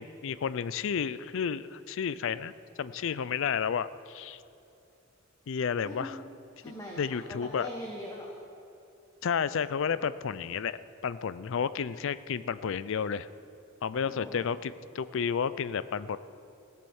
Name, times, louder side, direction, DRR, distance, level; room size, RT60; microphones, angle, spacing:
voice 1, 0.0-2.5 2.8-4.4 5.5-6.1 7.0-7.7 9.2-10.8 11.0-13.3 13.8-16.2, left 7 dB, 65° left, 15 dB, 0.4 m, -31 dB
voice 2, 6.6-8.3 14.0-14.5, equal, 15° left, -2 dB, 1.3 m, -42 dB
16.0 x 7.6 x 7.1 m, 2.8 s
head